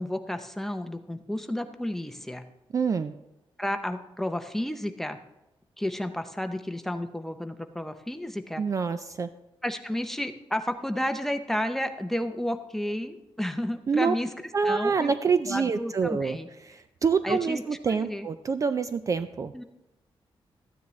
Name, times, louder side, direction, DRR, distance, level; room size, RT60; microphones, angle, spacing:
voice 1, 0.0-2.4 3.6-5.2 5.8-8.6 9.6-14.3 14.6-15.1 15.4-16.5 17.2-17.6 17.9-18.3 19.5-19.6, left 1 dB, 5° left, 7 dB, 0.6 m, -31 dB
voice 2, 2.7-3.1 8.6-9.3 13.9-14.1 14.5-16.4 16.7-19.5, right 5 dB, 35° right, 11 dB, 0.3 m, -26 dB
13.5 x 9.5 x 3.1 m, 0.95 s
wide cardioid pair, 150°, 10 cm